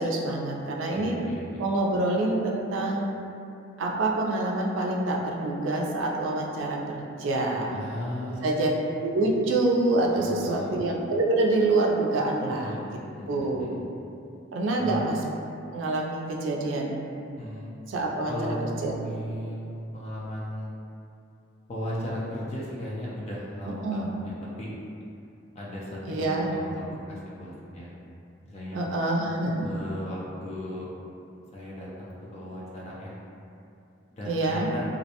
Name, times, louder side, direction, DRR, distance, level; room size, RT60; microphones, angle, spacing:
voice 1, 0.0-1.2 1.6-3.1 3.8-7.7 8.4-8.7 9.0-12.8 13.3-13.7 14.5-15.2 15.7-17.0 17.9-18.5 18.8-18.9 23.8-24.1 26.1-26.5 28.7-29.5 34.2-34.7, right 2 dB, 85° right, -1 dB, 0.4 m, -26 dB
voice 2, 0.9-1.6 7.7-8.7 10.1-10.8 12.5-13.8 14.8-15.0 17.4-17.7 18.3-20.7 21.7-24.7 25.5-28.0 28.4-28.8 29.6-30.9 31.5-33.2 34.1-34.8, equal, 35° left, -6 dB, 0.4 m, -36 dB
2.5 x 2.1 x 2.7 m, 2.7 s
head